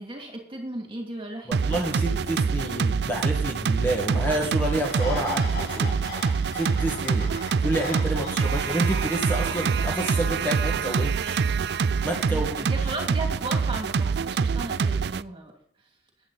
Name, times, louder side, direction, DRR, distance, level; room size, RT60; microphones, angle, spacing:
voice 1, 0.0-2.6 12.2-15.5, right 1 dB, 30° right, 1 dB, 2.6 m, -36 dB
voice 2, 1.5-6.0 6.5-7.3 7.6-11.4 12.0-12.9, right 1 dB, 10° left, 0 dB, 1.8 m, -29 dB
sound 1, 1.5-15.2, right 5 dB, 70° right, 0.4 m, -25 dB
sound 2, 4.8-10.5, left 2 dB, 70° left, 5.1 m, -39 dB
15.0 x 9.7 x 4.1 m, 0.64 s
head